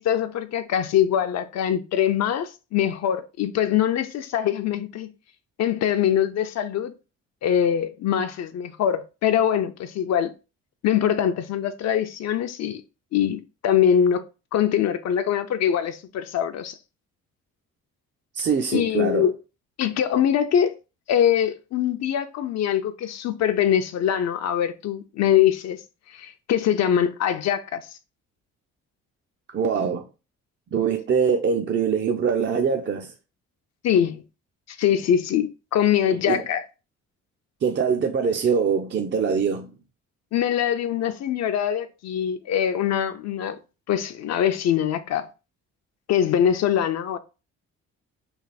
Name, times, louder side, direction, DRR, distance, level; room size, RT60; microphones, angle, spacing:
voice 1, 0.0-5.1 5.6-6.9 7.4-10.3 10.8-12.8 13.1-14.2 14.5-16.8 18.7-19.3 19.8-20.7 21.1-25.8 26.1-27.8 33.8-34.2 34.7-36.6 40.3-43.6 43.9-45.3 46.1-47.2, left 9 dB, 60° left, 0.5 m, -23 dB
voice 2, 18.3-19.3 29.5-30.1 30.7-33.1 36.1-36.4 37.6-39.7, right 6 dB, 40° right, 0.5 m, -23 dB
3.3 x 2.4 x 4.0 m
cardioid pair, 90°, 30 cm